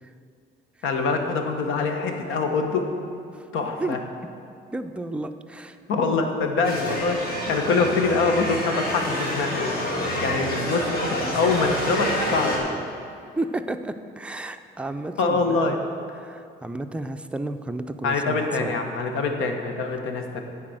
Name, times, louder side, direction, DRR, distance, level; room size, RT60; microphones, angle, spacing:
voice 1, 0.8-2.9 3.5-4.0 5.9-9.7 10.2-12.7 15.2-15.8 18.0-20.4, left 4 dB, 85° left, 4 dB, 1.1 m, -24 dB
voice 2, 4.7-5.8 10.2-10.7 13.4-15.8 16.2-18.7, right 2 dB, 5° right, 7 dB, 0.4 m, -32 dB
sound 1, 6.6-12.6, left 1 dB, 50° left, 2.2 m, -28 dB
10.5 x 4.1 x 7.7 m, 2.4 s
cardioid pair, 90°, 20 cm